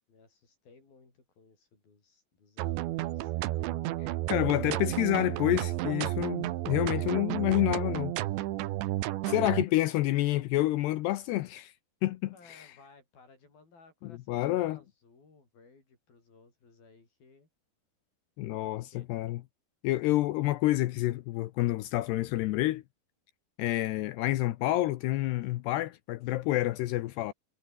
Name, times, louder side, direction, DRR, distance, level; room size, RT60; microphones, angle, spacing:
voice 1, 0.1-4.2 9.4-9.9 10.3-10.5 12.3-17.5 18.5-19.1, left 4 dB, 55° left, 8.8 m, -59 dB
sound 1, 2.6-9.7, right 16 dB, 85° right, 3.4 m, -32 dB
voice 2, 4.3-8.1 9.2-11.7 12.0-12.7 14.0-14.8 18.4-19.4 19.8-22.8 23.6-27.3, left 16 dB, 75° left, 2.8 m, -28 dB
omnidirectional pair, 5.1 m